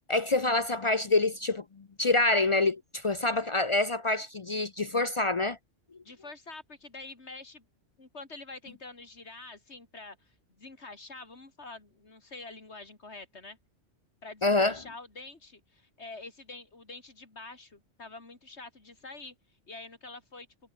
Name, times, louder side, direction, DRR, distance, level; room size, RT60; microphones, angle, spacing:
voice 1, 0.1-1.6 2.0-5.6 14.4-14.8, left 2 dB, 40° left, 0.5 m, -26 dB
voice 2, 6.0-7.6 8.0-13.6 14.2-19.4 19.7-20.5, left 3 dB, 65° left, 3.8 m, -46 dB
omnidirectional pair, 1.2 m